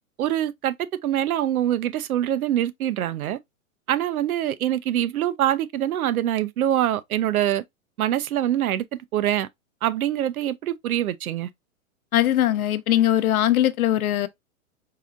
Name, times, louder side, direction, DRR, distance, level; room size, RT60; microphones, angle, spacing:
voice 1, 0.2-0.7 1.0-3.4 3.9-7.6 8.0-8.8 9.1-9.5 9.8-11.5, right 12 dB, 85° right, 0.7 m, -24 dB
voice 2, 12.1-14.3, left 12 dB, 85° left, 0.7 m, -20 dB
4.8 x 2.8 x 2.4 m
hypercardioid pair, 140°, 42 cm